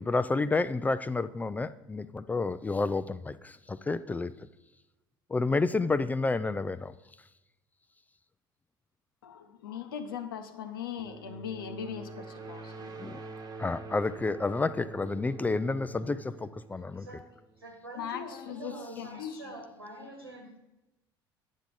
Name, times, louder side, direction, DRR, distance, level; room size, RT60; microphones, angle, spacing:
voice 1, 0.0-4.3 5.3-6.9 13.0-13.2 13.6-17.1, left 3 dB, 15° left, 14 dB, 0.3 m, -30 dB
voice 2, 9.2-12.9 17.9-19.4, left 8 dB, 70° left, 8 dB, 0.8 m, -39 dB
sound 1, 11.0-17.6, right 3 dB, 35° right, 1.2 m, -45 dB
voice 3, 16.7-17.3 17.6-20.6, left 1 dB, 85° right, 1 dB, 1.8 m, -44 dB
9.9 x 6.9 x 4.0 m, 0.95 s
figure-of-eight pair, 60°, 12 cm